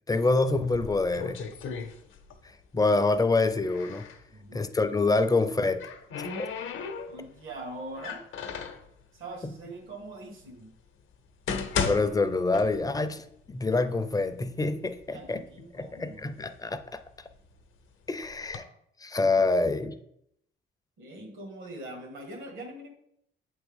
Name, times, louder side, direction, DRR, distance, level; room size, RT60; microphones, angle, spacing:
voice 1, 0.1-1.4 2.7-4.0 4.5-5.8 6.4-6.5 11.9-15.4 15.7-17.0 18.1-18.6 19.0-20.0, left 3 dB, 20° left, 10 dB, 0.4 m, -26 dB
sound 1, 0.6-2.5 2.8-4.2 5.3-7.4 7.9-8.9 9.6-9.7 10.4-10.5 11.1-13.1 13.4-13.5 14.3-14.4 14.7-15.4 15.9-17.6 18.2-18.6, left 5 dB, 80° left, 0.7 m, -35 dB
voice 2, 4.3-4.7 7.1-8.2 9.1-10.7 15.1-16.3 21.0-22.9, right 2 dB, 85° right, 2 dB, 1.7 m, -42 dB
7.8 x 3.5 x 3.6 m, 0.75 s
cardioid pair, 90°, 20 cm